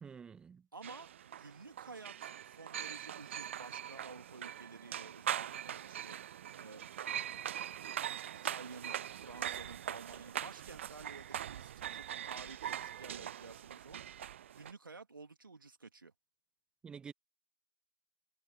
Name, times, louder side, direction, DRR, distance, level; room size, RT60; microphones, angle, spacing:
voice 1, 0.0-0.6 16.8-17.1, right 6 dB, 5° right, 1.1 m, -49 dB
voice 2, 0.7-6.2 6.5-6.8 8.4-16.1, right 4 dB, 70° right, 2.6 m, -52 dB
sound 1, 0.8-14.7, right 10 dB, 35° right, 0.4 m, -42 dB
figure-of-eight pair, 135°, 12 cm